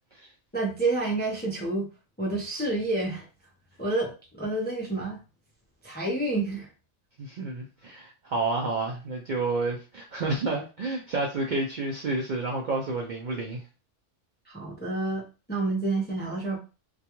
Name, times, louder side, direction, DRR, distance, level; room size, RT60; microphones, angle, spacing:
voice 1, 0.5-1.9 2.2-3.3 3.8-5.2 5.8-6.7 14.5-16.6, right 2 dB, 15° left, -2 dB, 0.4 m, -29 dB
voice 2, 7.2-13.6, right 3 dB, 60° right, -1 dB, 0.5 m, -30 dB
2.3 x 2.3 x 2.9 m, 0.32 s
omnidirectional pair, 1.2 m